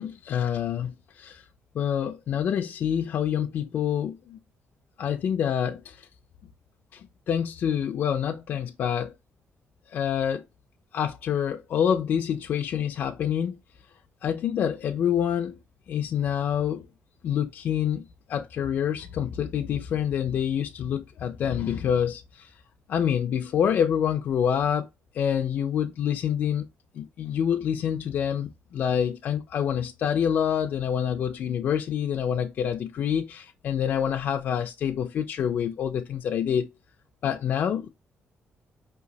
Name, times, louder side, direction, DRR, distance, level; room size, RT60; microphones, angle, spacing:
voice 1, 0.0-1.4 1.7-4.4 5.0-6.1 6.9-9.2 9.9-10.4 10.9-13.6 14.2-15.6 15.9-16.9 17.2-22.5 22.9-24.9 25.1-26.7 26.9-36.7 37.2-37.9, left 8 dB, 50° left, 0.3 m, -27 dB
5.2 x 2.9 x 2.7 m
cardioid pair, 175°, 4 cm